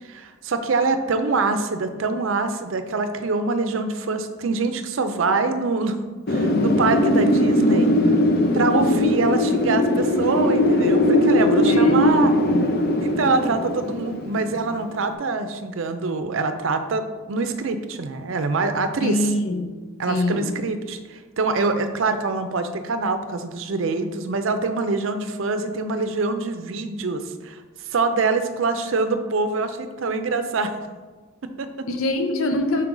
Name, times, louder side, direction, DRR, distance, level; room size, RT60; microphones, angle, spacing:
voice 1, 0.0-6.0 6.3-7.9 8.5-12.3 13.0-19.3 20.0-30.7 31.4-31.9, right 3 dB, 65° right, 8 dB, 0.5 m, -24 dB
Wind, 6.3-15.0, left 1 dB, 50° left, 0.5 m, -20 dB
voice 2, 11.7-12.7 19.0-19.6 20.1-20.5 31.9-32.9, left 2 dB, 85° left, 5 dB, 0.7 m, -25 dB
5.9 x 4.5 x 3.8 m, 1.3 s
head